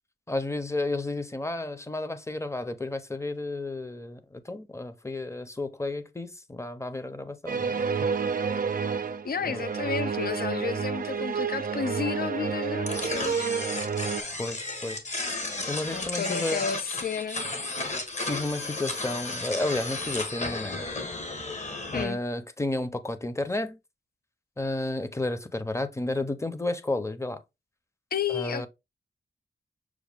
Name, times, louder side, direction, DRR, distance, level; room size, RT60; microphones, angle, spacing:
voice 1, 0.3-7.8 9.5-9.6 14.4-15.0 15.7-16.6 18.3-20.8 21.9-23.8 24.6-27.4 28.3-28.7, left 2 dB, 15° left, 0.7 m, -32 dB
sound 1, 7.5-14.2, right 6 dB, 55° right, 0.5 m, -29 dB
voice 2, 9.2-13.5 15.9-17.5 21.9-22.2 28.1-28.7, left 6 dB, 60° left, 0.5 m, -32 dB
sound 2, 12.9-22.0, left 2 dB, 45° left, 1.2 m, -33 dB
6.2 x 2.2 x 3.4 m
cardioid pair, 60°, 17 cm